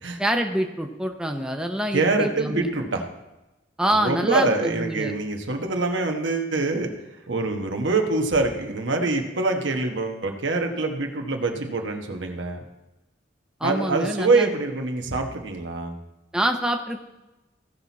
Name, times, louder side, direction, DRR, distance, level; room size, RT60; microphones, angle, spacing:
voice 1, 0.2-2.7 3.8-5.1 13.6-14.5 16.3-17.0, right 1 dB, 5° right, 4 dB, 0.6 m, -26 dB
voice 2, 1.9-3.0 3.9-6.9 7.3-12.6 13.6-16.0, right 3 dB, 90° right, 3 dB, 1.3 m, -25 dB
16.0 x 6.0 x 4.1 m, 1.0 s
head